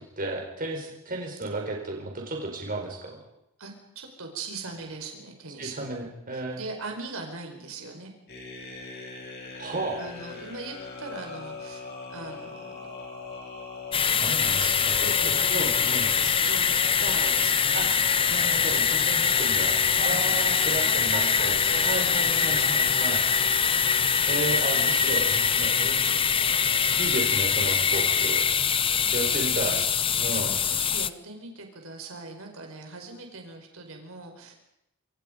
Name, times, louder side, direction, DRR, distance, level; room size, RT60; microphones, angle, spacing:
voice 1, 0.2-3.2 5.6-6.6 9.5-10.0 14.2-16.1 17.7-23.2 24.3-26.5 27.0-28.4 29.1-29.8 30.2-30.5, right 2 dB, 40° right, 1 dB, 4.8 m, -33 dB
voice 2, 3.6-8.1 10.0-11.8 12.1-12.9 14.1-17.9 18.2-18.4 20.0-23.1 29.2-34.5, right 3 dB, 65° right, 3 dB, 5.0 m, -41 dB
sound 1, 8.3-27.2, left 4 dB, 45° left, 7.2 m, -41 dB
sound 2, 13.9-31.1, left 6 dB, 25° left, 0.8 m, -23 dB
27.0 x 26.0 x 5.3 m, 0.81 s
head